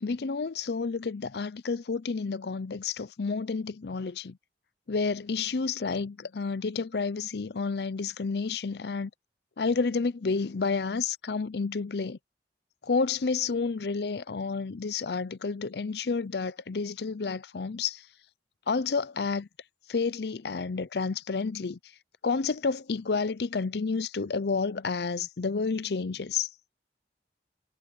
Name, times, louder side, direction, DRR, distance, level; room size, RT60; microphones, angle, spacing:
voice 1, 0.0-4.4 4.9-9.1 9.6-12.2 12.8-18.0 18.7-19.5 19.9-21.8 22.2-26.5, left 4 dB, 65° left, 0.6 m, -30 dB
head